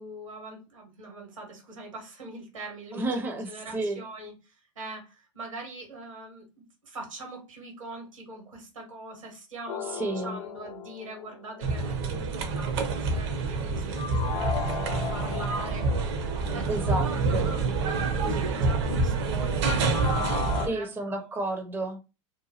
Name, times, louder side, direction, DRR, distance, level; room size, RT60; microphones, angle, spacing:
voice 1, 0.0-6.4 6.8-20.1 20.4-21.3, right 2 dB, 85° right, 1.5 m, -42 dB
voice 2, 2.9-4.0 9.9-10.4 16.7-17.5 20.6-22.1, right 2 dB, 15° right, 0.5 m, -31 dB
sound 1, 9.7-11.7 14.0-16.6 19.6-20.7, left 8 dB, 50° left, 0.5 m, -36 dB
sound 2, 11.6-20.7, right 3 dB, 60° right, 0.7 m, -27 dB
2.9 x 2.2 x 2.8 m
figure-of-eight pair, 90°, 16 cm